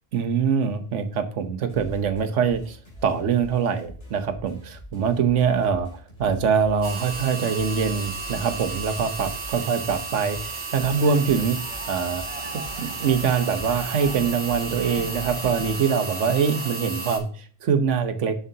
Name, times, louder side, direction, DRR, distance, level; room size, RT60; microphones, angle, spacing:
voice 1, 0.1-2.8 3.0-11.6 11.9-12.2 12.5-18.4, right 6 dB, 85° right, 9 dB, 1.2 m, -24 dB
sound 1, 1.7-15.7, equal, 75° left, 3.3 m, -43 dB
sound 2, 6.8-17.2, right 3 dB, 65° right, 1.7 m, -34 dB
sound 3, 10.9-16.7, right 3 dB, 30° right, 1.1 m, -40 dB
7.4 x 7.0 x 2.8 m, 0.42 s
omnidirectional pair, 1.2 m